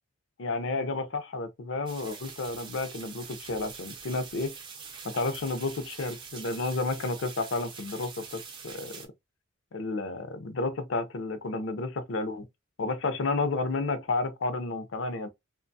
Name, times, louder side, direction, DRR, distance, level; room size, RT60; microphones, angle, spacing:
voice 1, 0.4-4.5 5.0-9.0 9.7-12.5 12.8-15.3, left 3 dB, 60° left, 0.5 m, -31 dB
sound 1, 1.9-9.1, right 6 dB, 20° right, 0.4 m, -44 dB
2.9 x 2.2 x 2.6 m
head